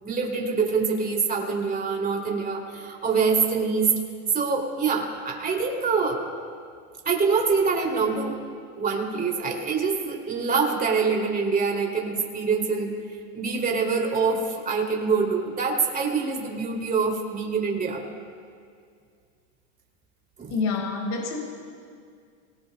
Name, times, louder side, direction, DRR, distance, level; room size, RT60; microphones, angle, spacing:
voice 1, 0.0-3.9 4.3-6.2 7.0-8.4 8.8-12.9 13.3-18.0 20.4-20.5, right 5 dB, 20° right, -1 dB, 3.0 m, -25 dB
voice 2, 20.5-21.4, left 4 dB, 45° left, -1 dB, 5.1 m, -27 dB
24.5 x 19.5 x 2.3 m, 2.2 s
supercardioid pair, 115°, 39 cm